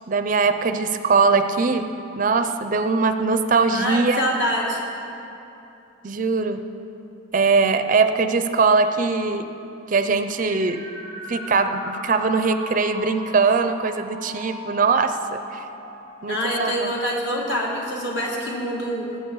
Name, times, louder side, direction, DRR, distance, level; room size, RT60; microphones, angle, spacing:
voice 1, 0.1-1.9 2.2-4.3 6.0-6.6 7.3-9.5 9.9-10.8 11.3-15.6 16.2-16.9, right 4 dB, 40° right, 9 dB, 0.5 m, -21 dB
voice 2, 3.7-4.8 16.3-19.2, equal, 60° left, -3 dB, 2.4 m, -25 dB
sound 1, 10.3-17.9, left 2 dB, 85° left, 2.9 m, -39 dB
19.0 x 8.6 x 4.7 m, 2.9 s
head